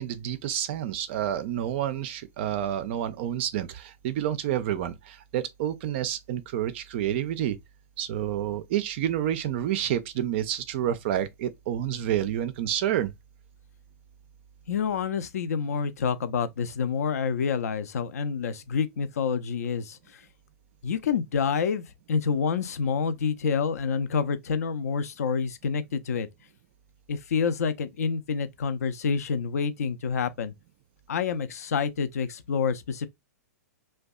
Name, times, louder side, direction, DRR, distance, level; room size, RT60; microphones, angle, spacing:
voice 1, 0.0-7.6 8.0-13.1, right 11 dB, 45° right, 0.3 m, -29 dB
voice 2, 14.7-20.0 20.8-26.3 27.1-30.5 31.1-33.1, left 6 dB, 65° left, 0.4 m, -28 dB
2.6 x 2.2 x 2.3 m
figure-of-eight pair, 115°, 9 cm